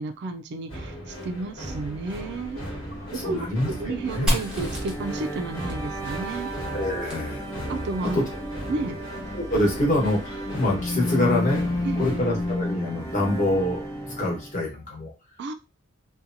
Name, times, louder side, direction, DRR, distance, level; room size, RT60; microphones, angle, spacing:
voice 1, 0.0-2.6 3.1-3.5 3.8-6.5 7.7-8.2 8.7-9.0 11.8-12.2 15.4-15.5, right 3 dB, 55° right, 6 dB, 0.3 m, -32 dB
sound 1, 0.7-12.5, equal, 75° left, 1.3 m, -37 dB
sound 2, 1.7-14.6, left 1 dB, 15° left, 0.4 m, -33 dB
voice 2, 3.0-4.3 6.7-7.4 8.0-8.2 9.3-13.8 14.2-15.1, left 1 dB, 40° left, -2 dB, 1.1 m, -26 dB
Fire, 4.3-7.9, equal, 5° right, 0.8 m, -32 dB
2.8 x 2.2 x 2.5 m, 0.29 s
head